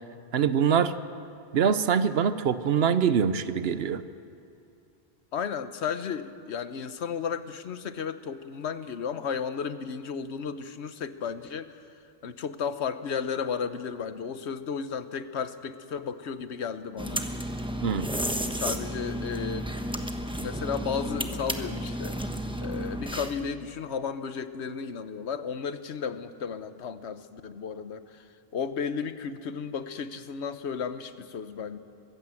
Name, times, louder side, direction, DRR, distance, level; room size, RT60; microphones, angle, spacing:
voice 1, 0.3-0.9 1.5-4.0 17.8-18.1, right 7 dB, 70° right, 13 dB, 1.0 m, -24 dB
voice 2, 5.3-11.8 12.2-17.3 18.2-19.7 20.3-31.8, left 6 dB, 80° left, 12 dB, 1.2 m, -34 dB
sound 1, 17.0-23.5, equal, 5° right, 1.0 m, -32 dB
23.0 x 15.5 x 7.7 m, 2.6 s
omnidirectional pair, 1.1 m